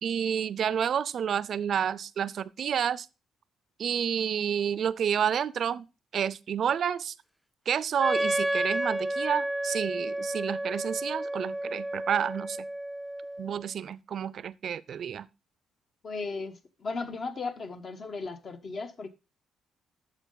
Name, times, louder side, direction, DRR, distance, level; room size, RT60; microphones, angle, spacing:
voice 1, 0.0-3.1 3.8-5.9 6.1-7.1 7.7-12.7 13.4-15.3, right 8 dB, 60° right, 0.4 m, -29 dB
Wind instrument woodwind instrument, 8.0-13.6, right 1 dB, ahead, 0.4 m, -31 dB
voice 2, 16.0-19.1, left 4 dB, 50° left, 1.1 m, -36 dB
9.1 x 6.6 x 3.9 m
cardioid pair, 90°, 0 cm